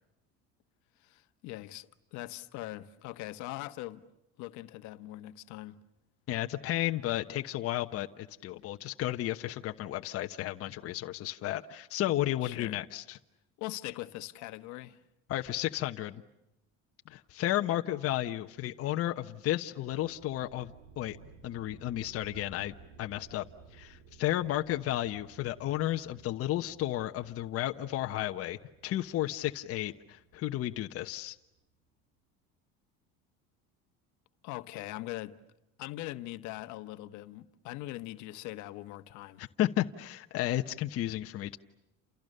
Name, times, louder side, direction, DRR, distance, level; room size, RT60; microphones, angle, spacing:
voice 1, 1.0-4.0 4.4-5.8 12.4-12.8 13.6-15.0 34.4-35.3 35.8-39.4, left 17 dB, 65° left, 1.3 m, -41 dB
voice 2, 6.3-13.2 15.3-16.2 17.1-21.2 21.4-23.4 23.7-31.4 39.4-41.6, left 14 dB, 50° left, 1.2 m, -33 dB
sound 1, 19.8-31.3, right 6 dB, 75° right, 3.1 m, -57 dB
29.5 x 28.5 x 6.7 m
cardioid pair, 135°, 31 cm